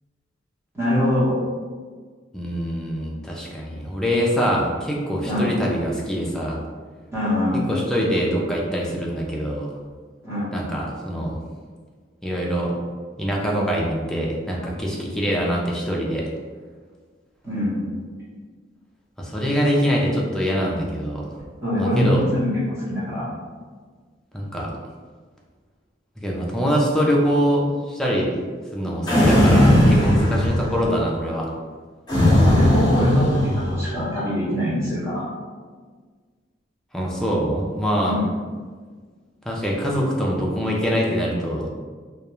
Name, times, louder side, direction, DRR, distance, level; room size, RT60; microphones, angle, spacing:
voice 1, 0.7-1.4 5.3-5.5 7.1-7.7 10.2-10.6 17.4-17.8 21.6-23.3 32.4-35.3 38.0-38.4, left 1 dB, 15° right, -10 dB, 0.8 m, -23 dB
voice 2, 2.3-6.6 7.7-9.7 10.5-11.4 12.2-12.7 13.2-16.3 19.2-21.2 21.8-22.2 24.3-24.7 26.2-28.3 28.7-31.5 36.9-38.2 39.5-41.7, equal, 5° left, -3 dB, 0.3 m, -24 dB
sound 1, 29.1-30.9 32.1-33.9, left 1 dB, 25° left, 0.8 m, -17 dB
2.3 x 2.1 x 2.9 m, 1.5 s
head